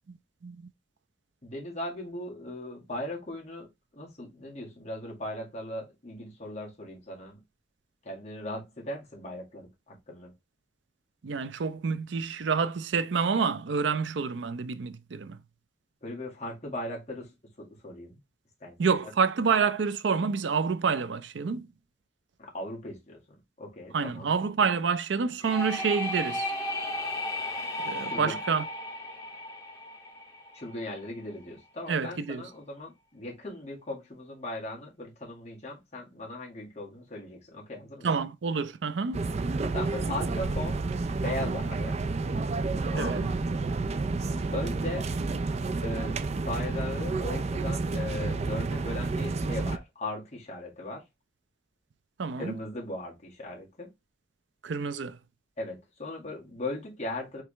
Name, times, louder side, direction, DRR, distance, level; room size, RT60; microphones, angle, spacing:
voice 1, 1.4-7.4 8.0-10.3 16.0-17.3 17.6-18.2 18.6-18.9 22.4-23.2 23.6-24.3 28.1-28.4 30.5-38.1 39.7-40.8 41.2-42.0 42.9-43.3 44.5-45.1 45.8-51.0 52.4-53.9 55.6-57.4, left 1 dB, 40° left, 1.9 m, -38 dB
voice 2, 11.2-15.4 18.8-21.7 23.9-26.5 27.9-28.6 31.9-32.4 38.0-39.2 42.9-43.3 52.2-52.5 54.6-55.2, right 5 dB, 90° right, 0.5 m, -28 dB
sound 1, 25.4-31.1, left 1 dB, 20° left, 1.6 m, -35 dB
sound 2, 39.1-49.8, right 3 dB, 35° right, 0.4 m, -30 dB
4.7 x 3.4 x 3.2 m
head